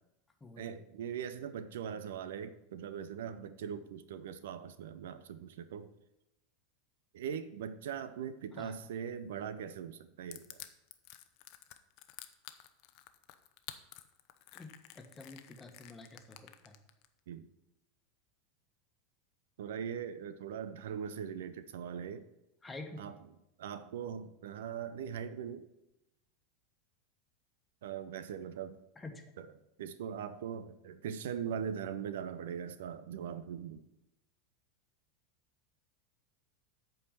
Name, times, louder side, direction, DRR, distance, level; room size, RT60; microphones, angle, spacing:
voice 1, 0.6-5.9 7.1-10.6 17.3-17.5 19.6-22.3 23.0-23.2 23.6-25.7 27.8-28.8 29.4-29.5 29.8-33.8, right 8 dB, 70° right, 13 dB, 0.5 m, -41 dB
Crushing, 10.3-17.1, left 15 dB, 50° left, 0.7 m, -50 dB
voice 2, 14.5-16.8 22.6-23.0 29.0-29.2, left 2 dB, 15° left, 5 dB, 1.4 m, -48 dB
8.4 x 4.7 x 7.5 m, 0.90 s
figure-of-eight pair, 85°, 0 cm